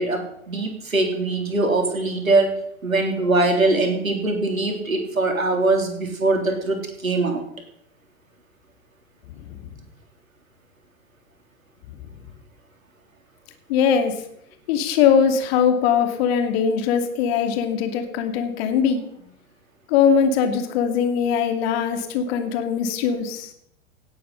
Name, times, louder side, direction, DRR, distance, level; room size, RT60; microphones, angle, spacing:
voice 1, 0.0-2.5 2.8-6.8 7.0-7.4, right 2 dB, 85° right, 3 dB, 3.7 m, -22 dB
voice 2, 13.7-14.1 14.7-19.0 19.9-23.5, left 7 dB, 50° left, 6 dB, 2.5 m, -21 dB
17.5 x 9.2 x 5.7 m, 0.71 s
figure-of-eight pair, 100°, 40 cm